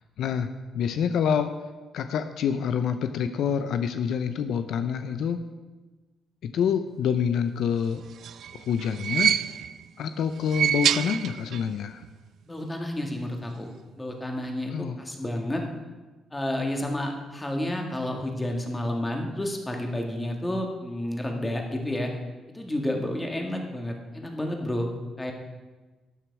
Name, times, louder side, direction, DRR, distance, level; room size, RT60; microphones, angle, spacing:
voice 1, 0.2-0.5 0.7-1.5 1.9-5.4 6.4-8.0 8.5-9.3 10.0-12.0 14.7-15.0, left 7 dB, 75° left, 9 dB, 0.6 m, -27 dB
sound 1, 8.0-9.9 10.4-11.8 12.0-12.1 13.2-13.3, right 9 dB, 70° right, 0.3 m, -27 dB
voice 2, 12.5-14.7 15.0-15.6 16.3-22.1 22.5-24.9 25.2-25.3, left 1 dB, 15° left, 2 dB, 2.0 m, -30 dB
12.5 x 9.2 x 4.8 m, 1.3 s
cardioid pair, 90°, 0 cm